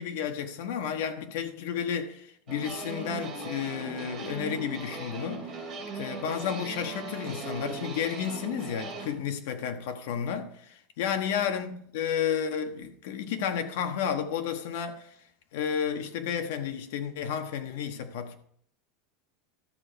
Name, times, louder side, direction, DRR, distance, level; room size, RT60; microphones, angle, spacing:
voice 1, 0.0-5.6 5.9-15.1 15.5-18.4, left 8 dB, 65° left, 1.3 m, -32 dB
sound 1, 2.5-9.1, right 4 dB, 20° right, 2.8 m, -38 dB
13.0 x 6.9 x 4.5 m
supercardioid pair, 165°, 0 cm